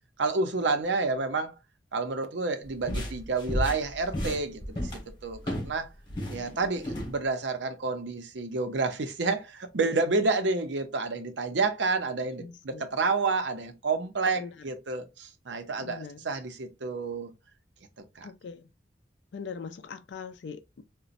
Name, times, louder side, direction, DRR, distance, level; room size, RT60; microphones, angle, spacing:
voice 1, 0.2-1.5 1.9-4.9 5.2-5.9 6.3-17.3 18.2-18.3, right 3 dB, 90° right, 0.6 m, -29 dB
sound 1, 2.6-5.8 6.1-7.1, equal, 25° left, 1.3 m, -33 dB
voice 2, 12.4-12.9 14.3-14.5 15.8-16.3 18.2-18.7 19.3-20.8, left 5 dB, 80° left, 0.4 m, -41 dB
4.0 x 2.2 x 2.5 m
head